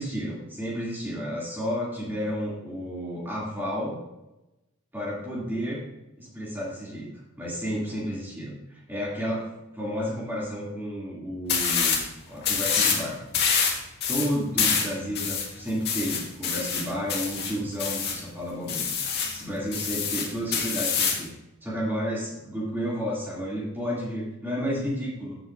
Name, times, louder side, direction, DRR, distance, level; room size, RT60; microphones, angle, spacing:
voice 1, 0.0-3.9 4.9-5.8 6.2-7.1 7.4-9.5 9.7-12.0 12.3-13.2 14.1-18.9 19.3-21.3 21.6-25.4, equal, 10° right, -6 dB, 2.6 m, -31 dB
sound 1, 11.5-12.1 12.4-13.0 13.3-18.2 18.7-19.4 19.7-21.3, left 6 dB, 55° left, 1.9 m, -26 dB
15.0 x 7.6 x 2.6 m, 0.95 s
head